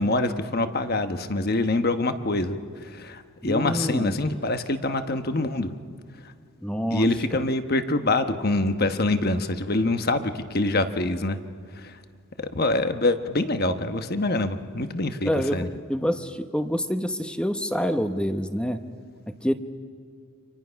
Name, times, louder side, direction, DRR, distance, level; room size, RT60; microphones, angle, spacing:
voice 1, 0.0-5.7 6.9-11.4 11.8-12.0 12.4-15.7, left 2 dB, 45° left, 8 dB, 1.2 m, -25 dB
voice 2, 3.4-4.1 6.6-7.1 7.3-7.4 15.2-18.8 19.4-19.5, equal, 5° left, 8 dB, 1.0 m, -27 dB
30.0 x 26.5 x 5.8 m, 2.3 s
head